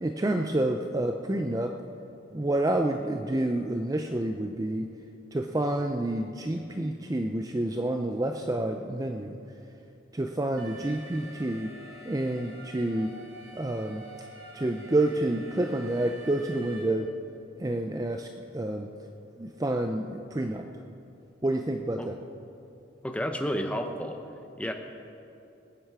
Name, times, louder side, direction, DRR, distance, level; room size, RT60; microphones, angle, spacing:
voice 1, 0.0-1.7 2.3-4.9 5.3-9.4 10.1-11.7 12.0-13.1 13.5-14.0 14.5-17.1 17.6-18.3 18.5-18.9 19.4-20.7 21.4-22.1, right 1 dB, 20° right, 5 dB, 0.4 m, -28 dB
Alarm, 10.6-16.8, right 1 dB, 50° right, 3.3 m, -47 dB
voice 2, 23.0-24.2 24.6-24.7, equal, 5° left, 4 dB, 0.8 m, -31 dB
21.0 x 9.0 x 4.8 m, 2.7 s
head